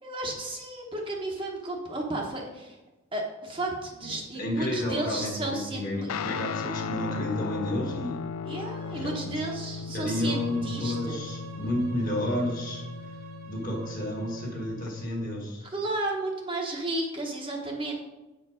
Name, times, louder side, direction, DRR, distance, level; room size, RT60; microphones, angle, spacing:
voice 1, 0.0-2.7 3.1-6.1 8.4-11.4 15.6-17.9, right 2 dB, 25° right, -1 dB, 1.0 m, -33 dB
voice 2, 4.3-8.2 8.9-9.4 9.9-12.8 13.4-15.6, left 1 dB, 40° left, 0 dB, 1.7 m, -31 dB
Guitar, 6.1-14.9, left 5 dB, 85° left, 0.4 m, -37 dB
Bowed string instrument, 9.9-15.1, right 4 dB, 75° right, 1.2 m, -48 dB
8.2 x 4.6 x 5.0 m, 1.1 s
head